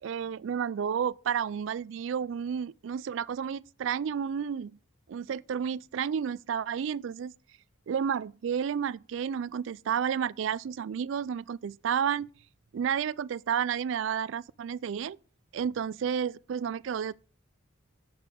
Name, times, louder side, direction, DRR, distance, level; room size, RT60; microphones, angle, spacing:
voice 1, 0.0-4.7 5.1-7.3 7.9-12.3 12.7-15.2 15.5-17.2, right 7 dB, 70° right, 0.3 m, -31 dB
7.8 x 5.9 x 6.7 m
head